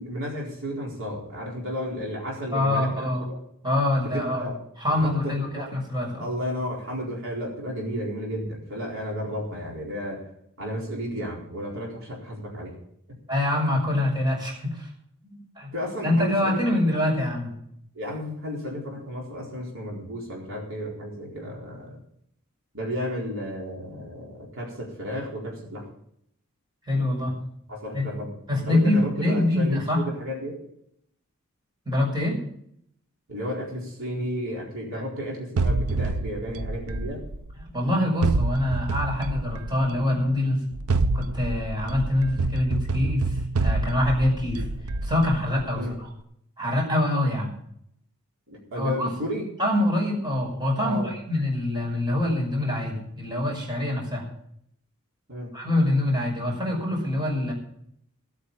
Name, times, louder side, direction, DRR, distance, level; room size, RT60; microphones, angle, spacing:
voice 1, 0.0-3.4 4.1-4.6 4.9-5.7 6.2-10.3 10.6-12.8 15.2-15.4 15.7-16.6 16.9-17.2 17.9-22.0 22.7-25.9 27.7-28.3 28.7-30.6 33.3-37.2 45.7-46.0 48.5-49.5 50.8-51.1 55.3-55.5, equal, 65° right, -3 dB, 4.2 m, -33 dB
voice 2, 2.5-3.2 3.6-4.5 4.8-6.3 13.3-14.9 15.6-15.7 16.0-17.5 26.9-27.3 27.9-28.1 28.5-30.0 31.9-32.4 37.7-40.6 41.1-44.7 45.0-46.1 46.6-47.5 48.7-49.1 49.6-54.3 55.5-57.5, left 1 dB, 20° right, -1 dB, 5.4 m, -25 dB
sound 1, 35.6-37.7 38.2-40.0 40.7-45.8, right 3 dB, 85° right, 0.6 m, -27 dB
17.5 x 8.6 x 5.4 m, 0.70 s
head